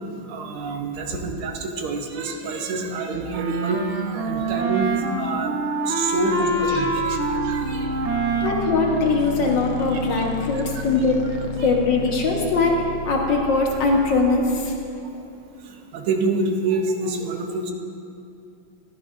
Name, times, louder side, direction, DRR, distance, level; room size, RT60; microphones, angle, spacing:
voice 1, 0.3-5.6 5.9-7.9 9.9-10.0 10.5-11.1 11.6-11.7 15.7-17.7, right 3 dB, 85° right, 3 dB, 1.7 m, -27 dB
Wind instrument woodwind instrument, 3.3-9.9, right 3 dB, 65° right, 0.7 m, -26 dB
sound 1, 6.0-14.9, left 4 dB, 85° left, 1.6 m, -34 dB
voice 2, 8.4-11.2 11.6-12.8 13.0-14.7, left 3 dB, 65° left, 0 dB, 1.7 m, -21 dB
14.5 x 10.5 x 2.5 m, 2.7 s
omnidirectional pair, 2.3 m